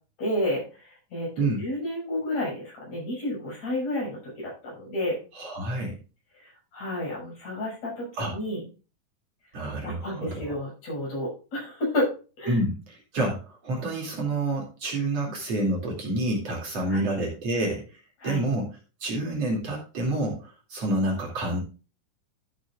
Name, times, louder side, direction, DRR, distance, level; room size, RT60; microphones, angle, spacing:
voice 1, 0.2-5.2 6.7-8.7 9.8-12.1 12.4-12.6 16.9-17.1 18.2-18.5, left 1 dB, 55° left, -2 dB, 7.5 m, -31 dB
voice 2, 5.4-6.0 8.2-8.3 9.5-10.6 12.5-18.7 19.0-21.6, right 2 dB, 50° right, -1 dB, 3.7 m, -28 dB
13.5 x 8.5 x 2.5 m, 0.33 s
omnidirectional pair, 3.8 m